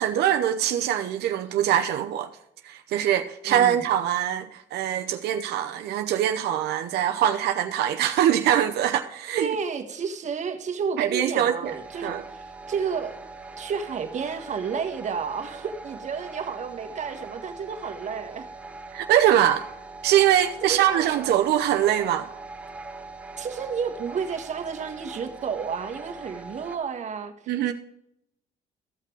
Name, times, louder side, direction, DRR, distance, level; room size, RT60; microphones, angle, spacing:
voice 1, 0.0-2.3 2.6-9.5 11.0-11.5 12.0-12.2 18.9-19.7 20.0-22.3 27.5-27.7, right 11 dB, 75° right, 0.7 m, -23 dB
voice 2, 3.4-3.9 9.4-13.2 13.6-18.5 20.6-21.5 23.4-27.5, right 6 dB, 45° right, 1.4 m, -31 dB
sound 1, 11.6-26.8, right 3 dB, 10° right, 1.5 m, -41 dB
14.5 x 5.8 x 4.6 m
cardioid pair, 110°, 17 cm